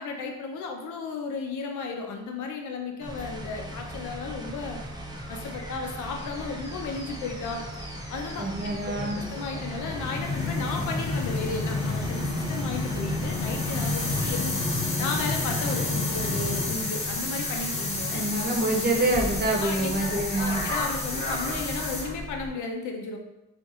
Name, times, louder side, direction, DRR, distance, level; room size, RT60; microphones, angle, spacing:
voice 1, 0.0-4.8 5.3-7.6 8.1-14.6 15.0-18.2 19.6-23.2, left 4 dB, 80° left, 3 dB, 0.6 m, -34 dB
sound 1, 3.0-22.5, left 2 dB, 20° left, 0.7 m, -31 dB
sound 2, 3.0-14.3, right 2 dB, 15° right, 0.4 m, -41 dB
voice 2, 8.4-9.2 18.1-20.6, right 2 dB, 35° right, 1 dB, 0.8 m, -26 dB
2.5 x 2.5 x 4.0 m, 0.96 s
cardioid pair, 90°, 30 cm